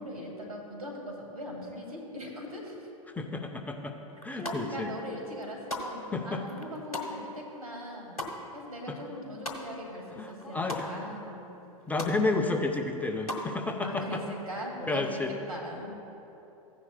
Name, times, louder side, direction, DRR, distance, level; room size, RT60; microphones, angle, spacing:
voice 1, 0.0-2.8 4.3-8.2 8.5-11.4 13.8-16.1, equal, 80° right, -1 dB, 2.0 m, -40 dB
voice 2, 3.2-3.9 4.2-4.9 6.1-6.4 10.1-10.8 11.9-14.2 14.9-15.3, left 3 dB, 10° left, 4 dB, 0.5 m, -31 dB
sound 1, 4.1-4.9 5.2-10.0 10.3-10.9 11.3-11.4 11.6-12.2 12.6-13.5, left 2 dB, 90° left, 1.1 m, -39 dB
15.0 x 9.7 x 2.2 m, 2.9 s
figure-of-eight pair, 95°, 18 cm